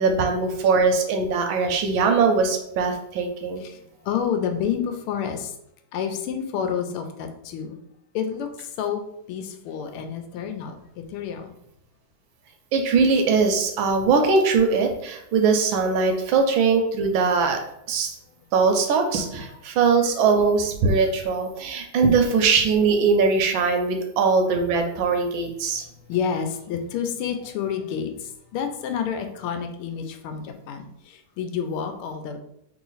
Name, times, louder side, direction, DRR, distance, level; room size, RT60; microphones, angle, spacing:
voice 1, 0.0-3.6 12.7-17.6 17.9-18.1 18.5-25.8, right 4 dB, 75° right, 4 dB, 1.3 m, -21 dB
voice 2, 4.0-5.5 5.9-7.8 8.1-9.0 9.3-10.7 11.1-11.5 19.1-19.5 25.7-32.4, left 7 dB, 80° left, 6 dB, 1.5 m, -29 dB
3.3 x 3.0 x 3.8 m, 0.77 s
omnidirectional pair, 2.4 m